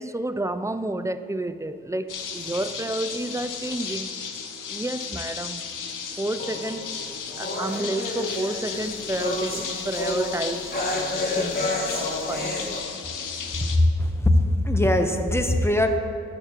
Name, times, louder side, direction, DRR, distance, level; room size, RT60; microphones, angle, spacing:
voice 1, 0.0-4.2 4.7-5.7 6.2-7.0 7.4-10.8 11.3-11.8 12.3-12.8, right 1 dB, 10° right, 0.4 m, -30 dB
sound 1, 2.1-13.8, left 6 dB, 80° left, 0.7 m, -34 dB
sound 2, 6.4-12.8, left 2 dB, 30° left, 1.7 m, -30 dB
voice 2, 14.0-15.9, left 1 dB, 10° left, 0.9 m, -21 dB
14.0 x 6.6 x 3.0 m
cardioid pair, 55°, 31 cm